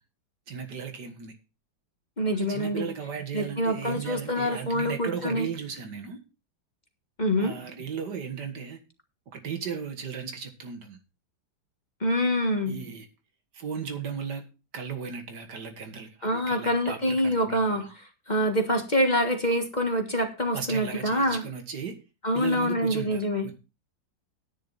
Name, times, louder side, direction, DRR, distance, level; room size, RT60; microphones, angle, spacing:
voice 1, 0.5-1.4 2.3-6.2 7.4-8.8 9.3-11.0 12.7-13.1 13.5-14.5 14.7-17.9 20.5-22.0 22.3-23.5, right 6 dB, 70° right, 6 dB, 2.2 m, -36 dB
voice 2, 2.2-2.9 3.3-5.5 7.2-7.5 12.0-12.8 16.2-17.9 18.3-21.4 22.2-23.5, equal, 25° left, 5 dB, 1.6 m, -26 dB
10.5 x 10.0 x 4.0 m, 0.30 s
omnidirectional pair, 1.9 m